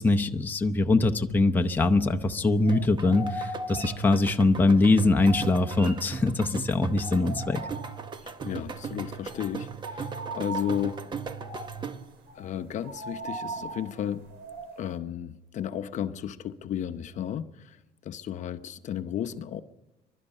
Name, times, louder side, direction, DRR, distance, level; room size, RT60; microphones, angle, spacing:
voice 1, 0.0-7.6, left 2 dB, 10° left, 0.8 m, -23 dB
sound 1, 1.6-2.4 2.6-6.6 7.0-8.3 8.7-8.9 9.1-14.9, right 2 dB, 85° right, 2.9 m, -40 dB
sound 2, 2.7-12.2, right 5 dB, 25° right, 0.8 m, -38 dB
voice 2, 8.2-11.0 12.3-14.3 14.8-19.6, left 10 dB, 45° left, 0.8 m, -34 dB
25.5 x 12.0 x 9.9 m
cardioid pair, 160°, 17 cm